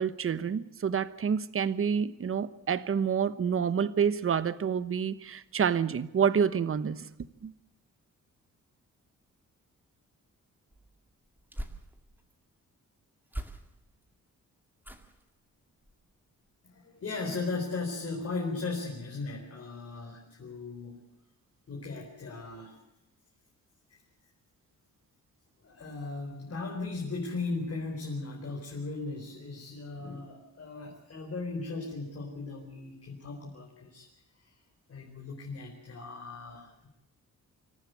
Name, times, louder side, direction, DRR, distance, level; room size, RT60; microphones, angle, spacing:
voice 1, 0.0-7.5, right 7 dB, 45° right, 15 dB, 1.1 m, -28 dB
sound 1, 10.7-12.4 13.3-14.0 14.8-15.3 15.8-16.1 16.4-16.5, right 1 dB, 5° right, 2.1 m, -43 dB
voice 2, 16.6-21.0 21.7-22.8 23.9-24.0 25.6-34.1 34.4-34.5 34.9-36.9, left 3 dB, 50° left, -1 dB, 4.4 m, -37 dB
26.0 x 14.5 x 8.3 m, 0.93 s
wide cardioid pair, 130°, 31 cm